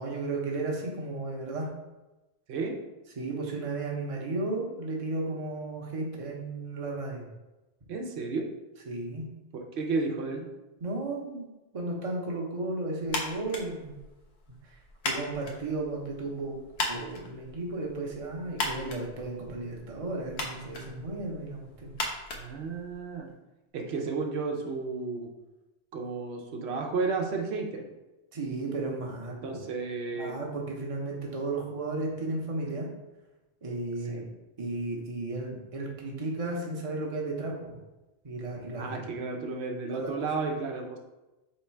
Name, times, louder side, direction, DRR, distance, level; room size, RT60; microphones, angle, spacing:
voice 1, 0.0-1.7 3.2-7.3 8.9-9.2 10.8-11.5 11.7-14.0 14.6-14.8 15.0-16.6 16.9-21.9 28.3-29.6 30.1-32.9 33.6-37.8 38.2-38.9 39.9-40.1, right 2 dB, 35° right, -1 dB, 0.8 m, -34 dB
voice 2, 7.9-8.5 9.5-10.5 22.3-23.3 23.7-25.3 25.9-27.8 29.4-30.3 34.1-34.3 38.8-41.0, right 4 dB, 90° right, 2 dB, 0.9 m, -32 dB
sound 1, 13.1-23.3, left 2 dB, 75° left, 1.0 m, -38 dB
3.2 x 3.1 x 4.4 m, 1.0 s
omnidirectional pair, 1.1 m